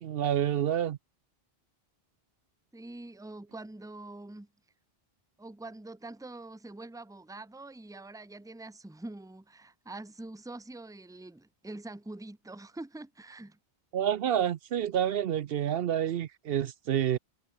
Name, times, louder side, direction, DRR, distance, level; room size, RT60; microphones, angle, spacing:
voice 1, 0.0-1.0 13.9-17.2, right 10 dB, 70° right, 0.8 m, -28 dB
voice 2, 2.7-4.5 5.4-13.6, right 2 dB, 5° right, 0.8 m, -45 dB
omnidirectional pair, 1.0 m